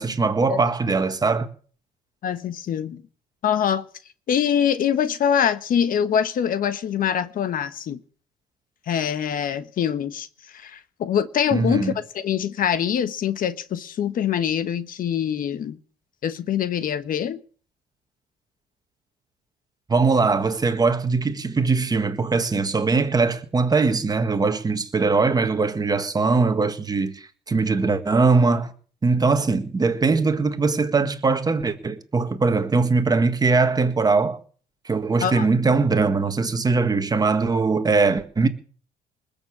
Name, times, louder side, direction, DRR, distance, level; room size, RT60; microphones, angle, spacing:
voice 1, 0.0-1.5 11.5-11.9 19.9-28.7 29.0-34.4 34.8-38.5, right 4 dB, 25° right, 1.7 m, -21 dB
voice 2, 2.2-3.0 3.4-3.8 4.3-8.0 8.9-15.8 16.2-17.4 35.2-35.5, left 8 dB, 55° left, 1.2 m, -24 dB
20.5 x 6.9 x 8.6 m
cardioid pair, 110°, 17 cm